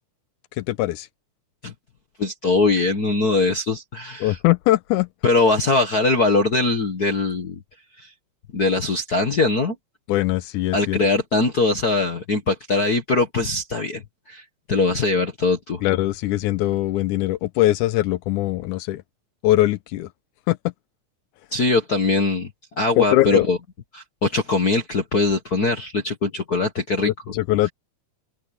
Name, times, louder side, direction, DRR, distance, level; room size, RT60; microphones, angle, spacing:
voice 1, 0.6-1.1 4.2-5.1 10.1-11.1 15.8-19.0 19.4-20.1 20.5-20.6 23.0-23.5 27.1-27.7, left 15 dB, 85° left, 2.3 m, -21 dB
voice 2, 2.2-4.4 5.2-7.5 8.0-8.1 8.5-9.7 10.7-14.0 14.3-15.8 21.5-22.5 22.8-23.6 23.9-27.1, left 3 dB, 40° left, 1.5 m, -21 dB
open air
omnidirectional pair, 3.5 m